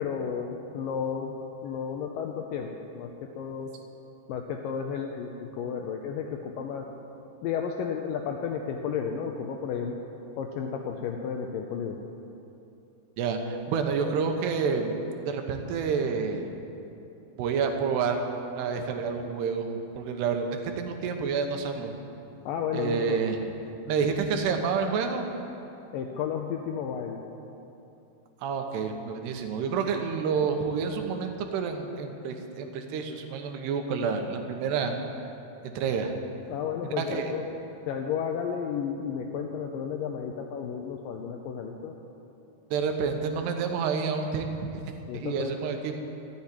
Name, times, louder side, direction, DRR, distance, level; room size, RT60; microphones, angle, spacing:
voice 1, 0.0-1.3 1.6-3.1 3.4-3.7 4.3-6.9 7.4-10.0 10.4-12.0 22.5-23.2 25.9-27.2 36.5-37.4 37.9-41.9 45.1-45.6, left 7 dB, 80° left, 3 dB, 2.0 m, -32 dB
voice 2, 13.2-16.5 17.4-18.2 18.6-20.5 20.8-21.9 22.7-23.4 23.9-25.3 28.4-34.9 35.6-36.1 36.8-37.3 42.7-44.7 45.1-46.0, right 5 dB, 90° right, 5 dB, 3.1 m, -29 dB
13.5 x 7.3 x 9.5 m, 2.9 s
omnidirectional pair, 4.6 m